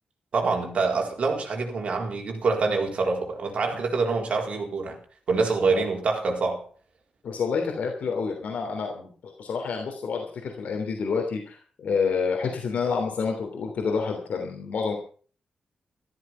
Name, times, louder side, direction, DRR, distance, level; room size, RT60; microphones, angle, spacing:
voice 1, 0.3-5.0 5.3-6.6, right 4 dB, 55° right, 4.2 m, -25 dB
voice 2, 7.2-15.0, left 5 dB, 75° left, 3.2 m, -28 dB
14.0 x 14.0 x 5.7 m
wide cardioid pair, 165°, 3 cm